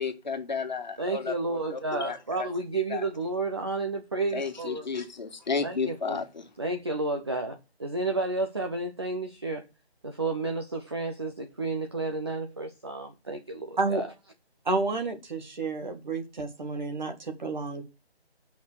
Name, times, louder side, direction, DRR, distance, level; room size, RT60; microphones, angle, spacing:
voice 1, 0.0-2.5 2.9-3.1 4.3-6.5, left 5 dB, 40° left, 1.8 m, -33 dB
voice 2, 1.0-4.9 5.6-6.2 6.6-9.6 10.0-14.1, right 3 dB, 25° right, 0.7 m, -31 dB
voice 3, 14.7-17.8, right 3 dB, 45° right, 1.9 m, -30 dB
7.0 x 5.8 x 6.5 m
figure-of-eight pair, 155°, 33 cm